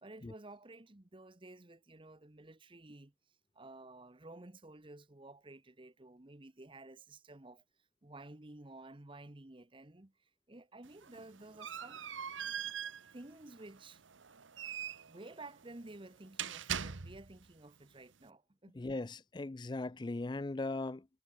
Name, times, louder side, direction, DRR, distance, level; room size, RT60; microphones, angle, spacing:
voice 1, 0.0-3.1 3.5-7.6 8.0-12.7 13.1-14.0 15.1-18.8, right 2 dB, 25° right, 1.0 m, -53 dB
sound 1, 10.8-17.5, right 8 dB, 90° right, 1.1 m, -43 dB
voice 2, 18.7-21.1, left 2 dB, 25° left, 0.4 m, -38 dB
head